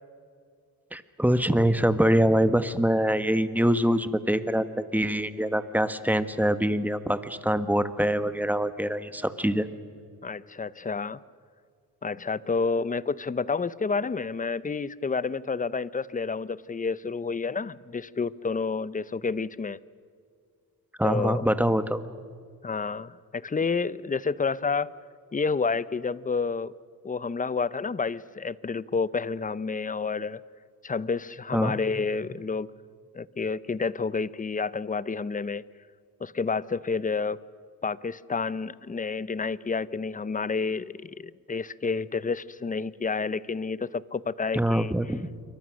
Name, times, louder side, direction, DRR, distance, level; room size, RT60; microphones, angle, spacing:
voice 1, 0.9-9.7 21.0-22.0 31.5-31.8 44.5-45.3, equal, 5° right, 12 dB, 1.2 m, -24 dB
voice 2, 10.2-11.2 12.0-19.8 21.0-21.5 22.6-24.9 25.3-26.7 27.0-30.4 30.8-32.7 33.1-35.6 36.2-37.4 37.8-45.0, left 4 dB, 20° left, 19 dB, 0.6 m, -29 dB
28.0 x 24.0 x 6.4 m, 2.1 s
cardioid pair, 95°, 37 cm